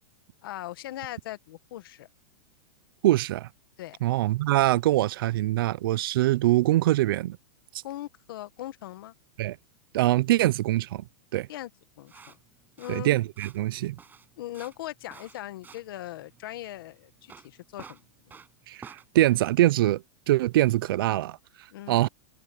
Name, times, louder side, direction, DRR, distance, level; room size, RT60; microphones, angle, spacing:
voice 1, 0.4-2.1 3.8-4.0 7.8-9.2 11.5-11.7 12.0-12.4 12.8-13.1 14.4-18.4 21.7-22.1, left 14 dB, 65° left, 1.8 m, -40 dB
voice 2, 3.0-3.5 4.0-7.4 9.4-9.6 9.9-11.0 11.3-11.5 12.9-14.0 18.7-21.4 21.9-22.1, right 15 dB, 65° right, 0.6 m, -23 dB
sound 1, 12.1-19.1, right 6 dB, 15° right, 7.7 m, -51 dB
supercardioid pair, 145°, 12 cm